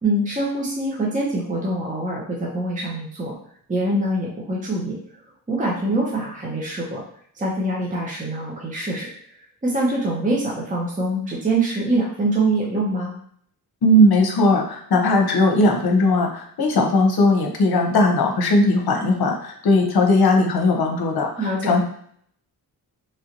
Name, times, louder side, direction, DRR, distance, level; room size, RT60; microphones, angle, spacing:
voice 1, 0.0-3.4 3.7-5.0 5.5-7.0 7.3-9.1 9.6-13.1 21.4-21.8, right 2 dB, 20° right, -4 dB, 0.7 m, -24 dB
voice 2, 13.8-21.8, left 1 dB, 65° left, 2 dB, 0.8 m, -18 dB
3.1 x 2.5 x 2.9 m, 0.63 s
cardioid pair, 90°, 40 cm